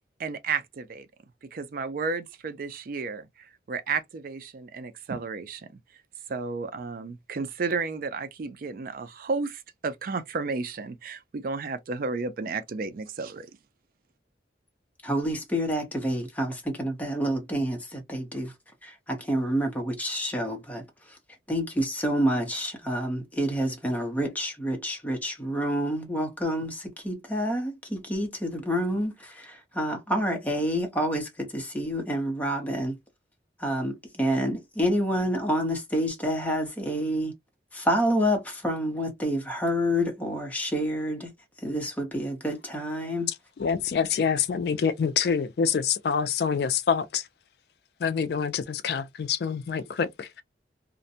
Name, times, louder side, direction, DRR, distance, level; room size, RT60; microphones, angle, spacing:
voice 1, 0.2-1.1 1.5-5.8 6.3-13.5, right 4 dB, 50° right, 0.4 m, -32 dB
voice 2, 15.0-18.5 18.8-21.2 21.5-33.0 33.6-37.3 37.7-41.3 41.6-43.3, equal, 10° left, 0.7 m, -28 dB
voice 3, 43.6-47.2 48.0-50.3, left 6 dB, 60° left, 0.3 m, -26 dB
2.5 x 2.1 x 2.6 m
head